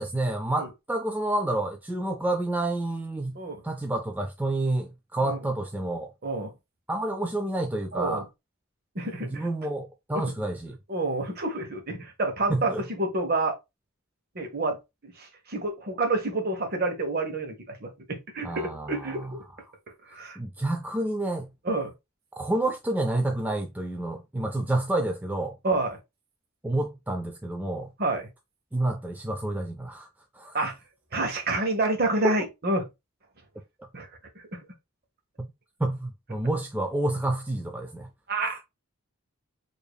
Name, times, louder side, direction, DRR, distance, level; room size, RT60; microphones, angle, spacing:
voice 1, 0.0-3.4 3.6-6.1 6.9-8.3 9.3-10.8 12.5-12.8 18.4-19.3 20.4-21.5 22.4-25.6 26.6-27.9 28.7-30.1 30.3-30.6 32.2-32.4 35.4-35.5 35.8-38.1, right 1 dB, 10° right, 0.3 m, -29 dB
voice 2, 7.9-8.2 8.9-9.5 10.1-10.2 10.9-13.6 14.3-14.8 15.0-19.4 20.1-20.4 21.6-21.9 25.6-26.0 28.0-28.3 30.5-30.7 31.1-32.9 33.9-34.1 34.5-34.6 38.3-38.6, right 2 dB, 45° right, 0.9 m, -28 dB
4.9 x 2.6 x 2.2 m
head